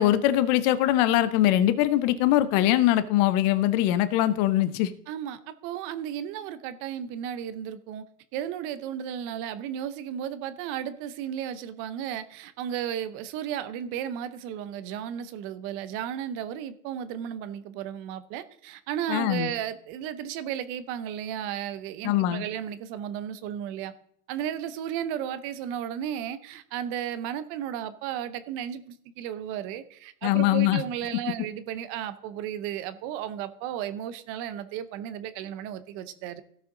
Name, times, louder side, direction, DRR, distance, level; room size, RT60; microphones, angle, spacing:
voice 1, 0.0-4.9 19.1-19.5 22.0-22.4 30.2-30.8, left 13 dB, 25° left, 14 dB, 0.6 m, -22 dB
voice 2, 5.1-8.0 8.3-23.9 24.3-36.4, right 10 dB, 25° right, 13 dB, 0.7 m, -34 dB
17.0 x 5.8 x 3.7 m, 0.65 s
hypercardioid pair, 140°, 47 cm